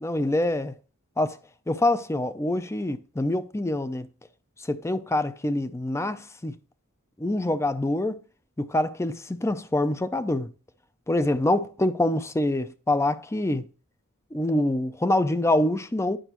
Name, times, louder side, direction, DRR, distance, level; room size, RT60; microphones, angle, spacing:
voice 1, 0.0-0.7 1.2-1.4 1.7-4.1 4.7-6.5 7.2-8.2 8.6-10.5 11.1-13.6 14.3-16.2, left 1 dB, 15° left, 0.5 m, -25 dB
10.0 x 5.9 x 3.0 m
head